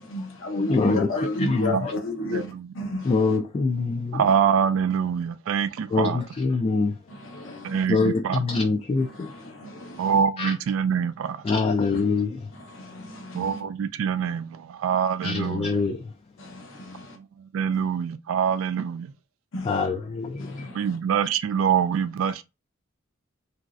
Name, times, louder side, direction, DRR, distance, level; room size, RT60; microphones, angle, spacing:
voice 1, 0.0-2.5 2.7-3.4 7.1-7.9 9.0-10.1 11.9-12.0 12.5-13.6 16.4-17.2 19.5-19.9 20.4-20.9, left 1 dB, 75° left, 0.8 m, -32 dB
voice 2, 0.7-1.1 1.4-1.7 3.1-4.2 5.9-6.1 6.4-6.9 7.9-9.1 10.4-10.5 11.5-12.3 15.2-16.0 19.7-20.3, left 4 dB, 30° left, 0.3 m, -23 dB
voice 3, 2.2-2.7 4.1-6.2 7.6-8.4 10.0-11.4 13.3-15.7 17.5-19.1 20.7-22.4, right 7 dB, 75° right, 0.3 m, -25 dB
2.9 x 2.6 x 2.4 m
head